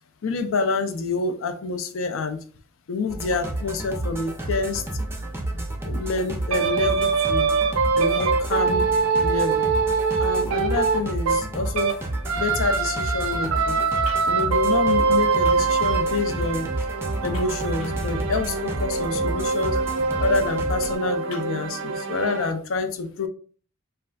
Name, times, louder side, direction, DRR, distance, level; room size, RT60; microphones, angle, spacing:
voice 1, 0.2-2.4 2.9-4.8 5.5-7.5 7.9-8.9 9.2-9.7 10.2-12.0 12.3-16.7 17.2-19.8 20.2-23.3, left 4 dB, 70° left, 8 dB, 0.4 m, -27 dB
sound 1, 3.1-21.0, right 1 dB, 10° right, 0.4 m, -31 dB
sound 2, 6.5-12.0 12.3-22.5, right 4 dB, 70° right, 0.4 m, -24 dB
3.3 x 2.3 x 2.5 m, 0.42 s
head